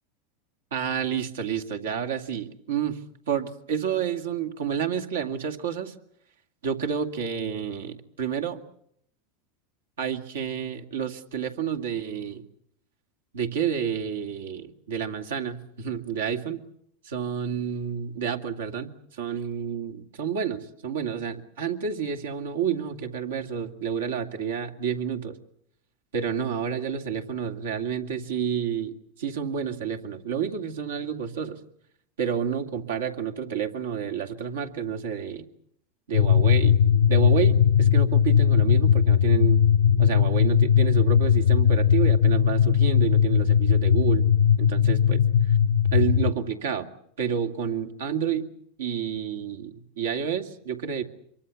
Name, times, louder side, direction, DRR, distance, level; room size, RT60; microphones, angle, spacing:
voice 1, 0.7-3.0 3.3-5.9 6.6-8.6 10.0-12.4 13.3-16.6 17.0-25.3 26.1-31.6 32.2-35.4 36.1-36.8 37.1-39.6 40.0-44.3 44.6-45.6 45.9-46.9 47.2-48.5 48.8-51.0, right 7 dB, 80° right, 4 dB, 2.4 m, -29 dB
sound 1, 36.1-46.3, left 8 dB, 80° left, 1.0 m, -19 dB
25.5 x 23.5 x 7.1 m, 0.70 s
hypercardioid pair, 100°, 0 cm